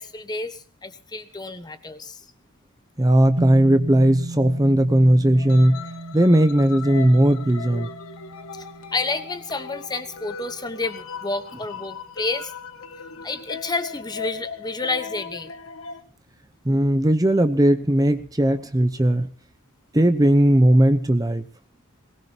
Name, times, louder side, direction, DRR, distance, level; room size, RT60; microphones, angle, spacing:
voice 1, 0.0-2.2 8.5-8.7 8.9-12.5 13.2-15.5, left 3 dB, 20° left, 10 dB, 1.1 m, -30 dB
voice 2, 3.0-5.8 6.1-7.9 16.6-19.3 19.9-21.4, right 1 dB, 15° right, 9 dB, 0.8 m, -17 dB
sound 1, 3.4-11.8, right 2 dB, 50° right, 1.9 m, -37 dB
sound 2, 5.3-16.0, left 6 dB, 70° left, 1.5 m, -38 dB
21.5 x 19.5 x 2.9 m, 0.40 s
head